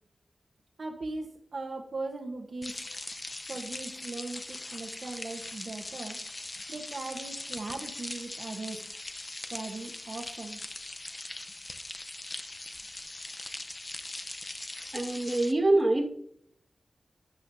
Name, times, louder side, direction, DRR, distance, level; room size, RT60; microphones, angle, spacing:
voice 1, 0.8-2.9 3.5-6.2 6.7-8.8 9.5-10.6, right 3 dB, 65° right, 2 dB, 1.1 m, -39 dB
sound 1, 2.6-15.5, left 2 dB, 35° left, 0.8 m, -41 dB
voice 2, 14.9-16.1, right 2 dB, 35° right, 0 dB, 1.8 m, -25 dB
12.0 x 10.5 x 2.7 m, 0.69 s
wide cardioid pair, 85°, 0 cm